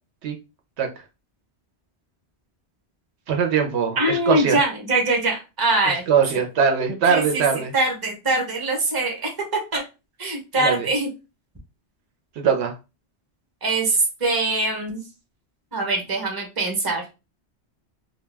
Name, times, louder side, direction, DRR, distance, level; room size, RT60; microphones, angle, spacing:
voice 1, 3.3-4.6 6.1-7.7 10.5-10.9 12.4-12.7, right 6 dB, 80° right, 0.9 m, -21 dB
voice 2, 4.0-6.0 7.1-7.4 7.7-9.3 9.7-9.8 10.2-11.1 13.6-15.0 15.7-17.0, right 2 dB, 25° right, 0.7 m, -23 dB
2.2 x 2.2 x 3.2 m
omnidirectional pair, 1.1 m